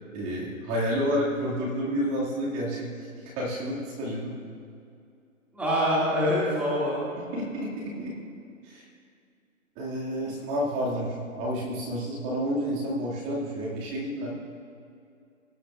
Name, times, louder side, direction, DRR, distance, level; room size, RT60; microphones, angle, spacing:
voice 1, 0.1-4.3 7.3-8.1 8.6-8.9 9.8-14.4, equal, 25° right, -5 dB, 2.1 m, -30 dB
voice 2, 5.5-7.0, equal, 5° right, -9 dB, 2.0 m, -25 dB
18.5 x 10.0 x 2.4 m, 2.5 s
hypercardioid pair, 150°, 41 cm